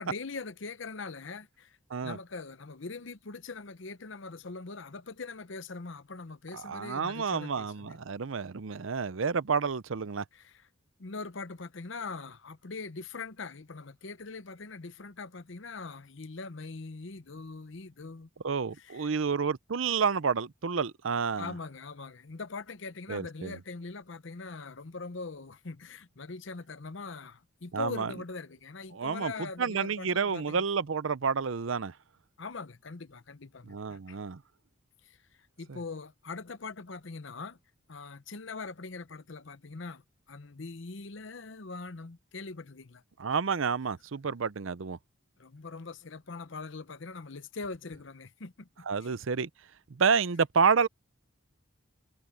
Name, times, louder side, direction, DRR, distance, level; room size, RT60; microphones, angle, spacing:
voice 1, 0.0-1.8 2.0-8.0 10.3-10.7 11.0-18.3 18.8-19.1 21.4-30.6 32.4-34.2 35.0-35.2 35.6-37.6 37.9-43.0 45.4-49.2, left 4 dB, 60° left, 0.8 m, -42 dB
voice 2, 6.5-10.2 18.4-21.5 23.1-23.6 27.7-28.1 28.9-31.9 33.7-34.4 35.7-35.8 43.2-45.0 48.9-49.5 49.9-50.9, right 5 dB, 70° right, 0.6 m, -29 dB
head